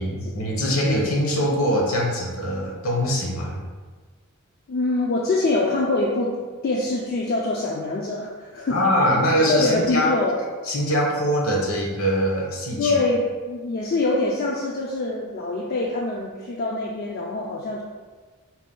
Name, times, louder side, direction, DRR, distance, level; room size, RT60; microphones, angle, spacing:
voice 1, 0.0-3.6 8.7-10.1 10.7-13.0, equal, 70° left, -2 dB, 0.9 m, -23 dB
voice 2, 4.7-6.3 6.6-8.8 9.4-10.4 12.8-17.8, left 2 dB, 45° left, -2 dB, 0.4 m, -24 dB
4.3 x 2.1 x 3.7 m, 1.4 s
head